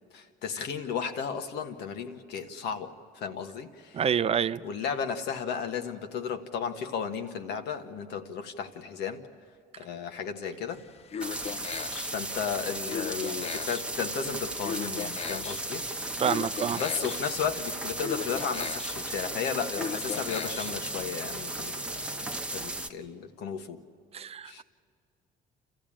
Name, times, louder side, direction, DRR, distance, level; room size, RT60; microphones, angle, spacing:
voice 1, 0.1-4.0 4.6-9.2 9.8-10.8 12.0-15.8 16.8-23.8 24.4-24.6, left 6 dB, 80° left, 1.5 m, -34 dB
voice 2, 3.9-4.6 16.2-16.8 24.1-24.5, right 8 dB, 35° right, 0.5 m, -27 dB
sound 1, 10.7-20.9, left 7 dB, 40° left, 0.5 m, -39 dB
sound 2, 11.2-22.9, right 2 dB, 5° right, 1.0 m, -35 dB
28.5 x 14.5 x 8.8 m
cardioid pair, 110°, 17 cm